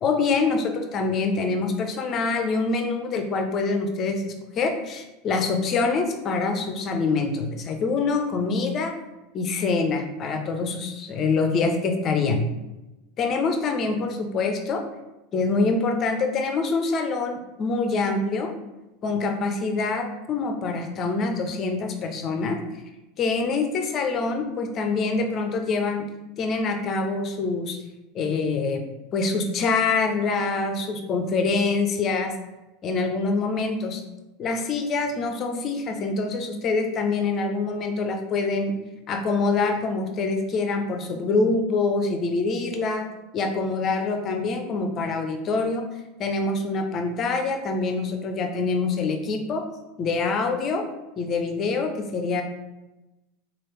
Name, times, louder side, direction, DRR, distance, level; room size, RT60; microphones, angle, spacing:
voice 1, 0.0-8.9 9.3-12.5 13.2-14.8 15.3-18.5 19.0-22.6 23.2-26.0 26.4-27.8 28.1-28.8 29.1-32.3 32.8-34.0 34.4-38.7 39.1-45.8 46.2-49.6 50.0-50.8 51.2-52.4, left 4 dB, 40° left, 5 dB, 0.5 m, -25 dB
3.2 x 2.4 x 3.1 m, 1.0 s
hypercardioid pair, 100°, 0 cm